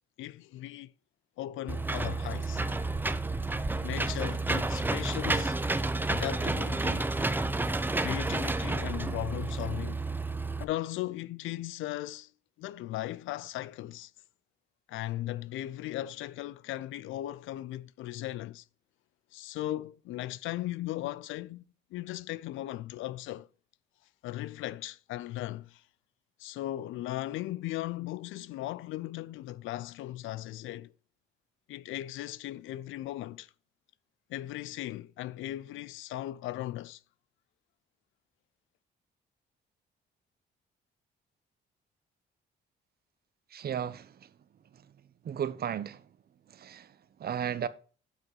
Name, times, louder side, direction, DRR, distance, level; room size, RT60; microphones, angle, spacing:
voice 1, 0.2-0.9 1.4-2.6 3.8-5.6 6.1-7.1 8.0-10.0 10.6-12.3 12.6-14.1 14.9-18.6 19.3-21.6 21.9-23.5 24.2-25.8 26.4-30.9 31.7-33.5 34.3-37.0, left 15 dB, 85° left, 0.4 m, -37 dB
Engine / Mechanisms, 1.7-10.6, right 2 dB, 10° right, 0.6 m, -30 dB
voice 2, 43.5-44.3 45.2-46.0 46.5-46.9 47.2-47.7, right 9 dB, 50° right, 0.8 m, -34 dB
7.7 x 6.0 x 4.6 m
cardioid pair, 90°, 20 cm